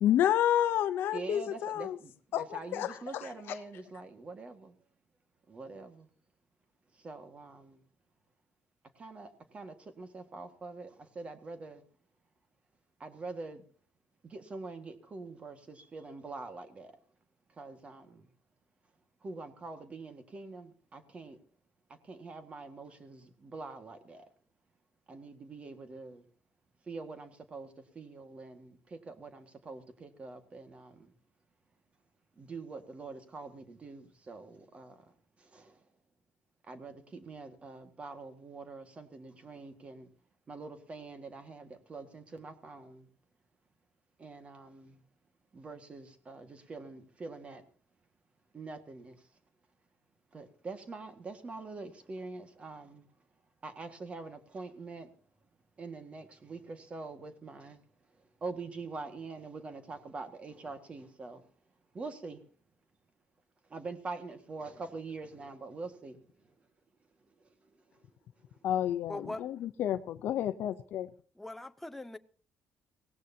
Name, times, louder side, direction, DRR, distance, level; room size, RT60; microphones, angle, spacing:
voice 1, 0.0-2.0 2.3-3.3 68.6-71.1, left 11 dB, 75° left, 0.7 m, -30 dB
voice 2, 1.1-4.8 5.5-6.1 6.9-7.8 9.0-11.8 13.0-13.6 14.2-17.0 17.5-18.3 19.2-21.4 21.9-24.3 25.1-26.2 26.8-31.1 32.3-35.9 36.6-40.1 40.5-43.1 44.2-45.0 45.5-47.7 48.5-49.3 50.3-53.1 53.6-55.1 55.8-61.5 61.9-62.4 63.7-66.5 67.4-68.1 68.4-68.6, right 3 dB, 35° right, 1.8 m, -45 dB
voice 3, 69.1-69.4 71.4-72.2, left 2 dB, 5° left, 0.8 m, -41 dB
23.5 x 17.5 x 2.8 m
cardioid pair, 115°, 4 cm